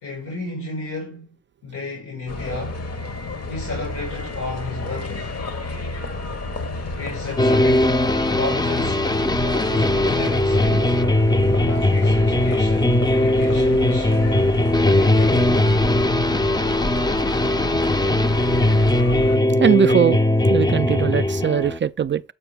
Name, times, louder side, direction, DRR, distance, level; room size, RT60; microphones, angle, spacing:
voice 1, 0.0-1.3 1.6-2.8 3.5-5.4 7.0-8.0 8.3-9.1 9.4-11.0 11.6-14.5 14.8-15.8, left 3 dB, 85° left, 2.7 m, -32 dB
sound 1, 2.3-19.4, left 2 dB, 55° left, 1.1 m, -31 dB
sound 2, 7.4-21.8, left 1 dB, 15° left, 0.6 m, -19 dB
voice 2, 19.6-20.2 20.5-22.2, right 8 dB, 40° right, 0.4 m, -20 dB
7.7 x 4.6 x 3.5 m
supercardioid pair, 45°, 30 cm